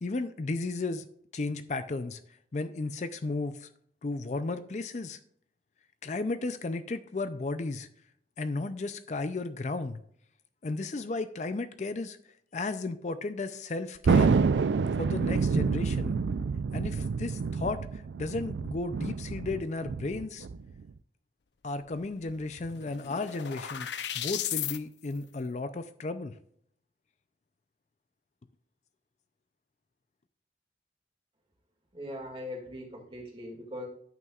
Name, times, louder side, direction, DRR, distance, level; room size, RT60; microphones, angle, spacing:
voice 1, 0.0-1.1 1.3-2.2 2.5-3.7 4.0-5.2 6.0-7.9 8.4-10.0 10.6-12.2 12.5-14.4 14.9-16.2 16.7-20.5 21.6-23.9 24.1-26.4, left 3 dB, 40° left, 11 dB, 0.4 m, -34 dB
Thunder, 14.0-20.9, right 5 dB, 80° right, 0.4 m, -28 dB
sound 1, 21.9-22.0 22.3-24.8, left 11 dB, 80° left, 0.6 m, -35 dB
voice 2, 31.9-33.9, left 1 dB, 30° right, 0 dB, 2.1 m, -40 dB
11.0 x 8.9 x 2.4 m, 0.65 s
head